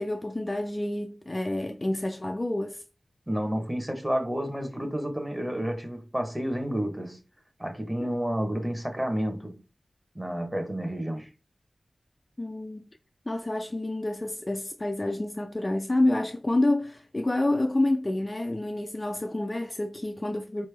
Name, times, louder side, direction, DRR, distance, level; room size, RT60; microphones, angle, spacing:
voice 1, 0.0-2.8 8.0-8.1 12.4-12.8 13.3-20.7, left 1 dB, 25° left, 0.4 m, -28 dB
voice 2, 3.3-7.2 7.6-9.6 10.1-11.3, equal, 10° right, 1.0 m, -30 dB
4.1 x 3.2 x 3.3 m
wide cardioid pair, 95°, 0 cm